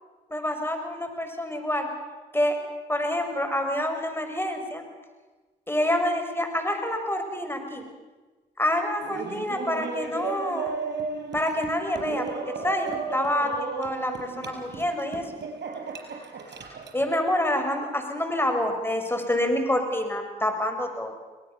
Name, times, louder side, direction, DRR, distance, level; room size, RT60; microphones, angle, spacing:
voice 1, 0.3-1.9 2.3-2.6 2.9-4.8 5.7-7.8 8.6-10.7 11.3-13.5 13.8-15.3 16.9-21.1, left 1 dB, 10° left, 5 dB, 5.7 m, -27 dB
Laughter, 9.0-17.1, right 4 dB, 60° right, 5.2 m, -34 dB
23.5 x 18.5 x 6.9 m, 1.3 s
hypercardioid pair, 40°, 20 cm